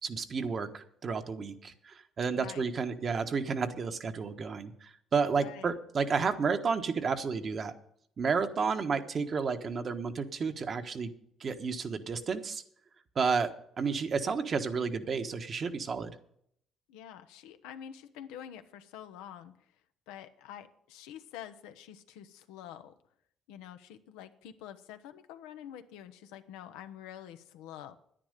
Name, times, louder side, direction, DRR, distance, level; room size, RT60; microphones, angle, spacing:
voice 1, 0.0-7.7 8.2-11.1 11.4-12.6 13.1-13.5 13.8-16.1, right 5 dB, 50° right, 7 dB, 1.3 m, -31 dB
voice 2, 2.3-2.7 5.3-5.7 16.9-19.7 20.1-22.9 23.5-28.0, left 10 dB, 90° left, 9 dB, 0.9 m, -47 dB
10.0 x 10.0 x 6.7 m, 0.69 s
supercardioid pair, 65°, 0 cm